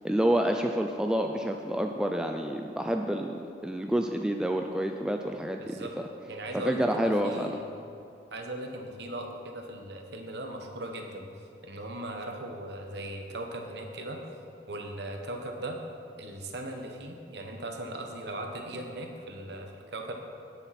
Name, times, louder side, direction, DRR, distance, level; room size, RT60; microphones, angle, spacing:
voice 1, 0.0-5.7 6.5-7.6, equal, 5° right, 3 dB, 0.4 m, -28 dB
voice 2, 5.6-6.0 6.3-7.7 8.3-11.3 11.6-14.2 14.7-15.8 16.2-20.1, right 1 dB, 70° right, 2 dB, 1.2 m, -38 dB
17.5 x 7.0 x 4.3 m, 2.5 s
head